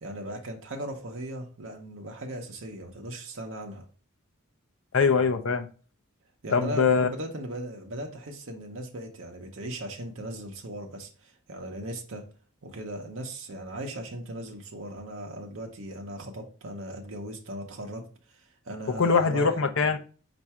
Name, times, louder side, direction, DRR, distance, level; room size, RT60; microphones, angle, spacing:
voice 1, 0.0-3.9 6.4-12.2 12.6-19.6, right 1 dB, 60° right, 0.7 m, -38 dB
voice 2, 4.9-5.7 6.5-7.1 19.0-20.0, left 5 dB, 65° left, 0.5 m, -22 dB
4.6 x 2.5 x 4.2 m
head